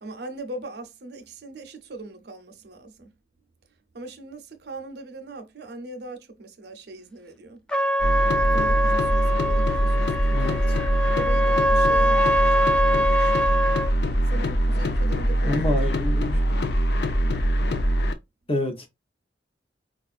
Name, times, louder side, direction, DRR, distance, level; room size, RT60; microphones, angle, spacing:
voice 1, 0.0-3.1 3.9-7.6 8.5-10.8 11.1-13.5 14.3-15.7 17.2-17.4, right 2 dB, 65° right, 0.7 m, -40 dB
Trumpet, 7.7-13.9, equal, 5° left, 0.3 m, -23 dB
sound 1, 8.0-18.1, equal, 65° left, 0.5 m, -23 dB
voice 2, 10.3-10.8 15.5-16.4 18.5-18.9, left 2 dB, 35° left, 0.8 m, -27 dB
4.4 x 2.4 x 2.4 m
head